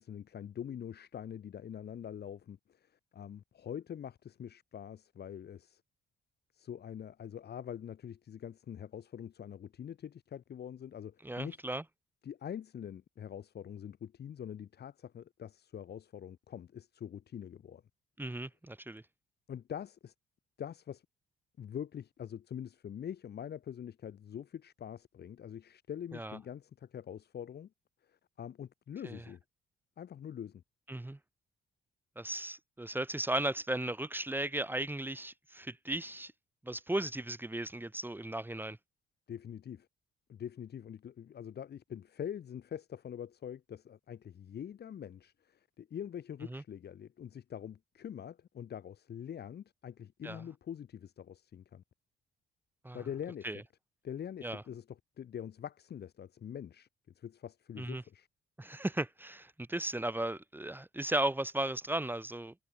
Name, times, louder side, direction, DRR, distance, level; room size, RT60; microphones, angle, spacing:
voice 1, 0.0-5.8 6.5-11.6 12.2-17.8 19.5-20.1 20.6-21.0 21.6-27.7 28.1-29.4 30.0-30.6 39.3-39.9 40.3-51.8 52.9-53.6 54.0-56.9 57.1-58.3, left 9 dB, 55° left, 1.7 m, -44 dB
voice 2, 11.2-11.8 18.2-19.0 26.1-26.4 29.0-29.2 30.9-31.2 32.2-36.3 36.6-38.8 46.5-46.6 50.2-50.4 52.8-53.0 53.4-53.6 54.4-54.6 57.8-58.0 58.6-62.5, right 1 dB, 10° right, 1.5 m, -36 dB
cardioid pair, 90°, 20 cm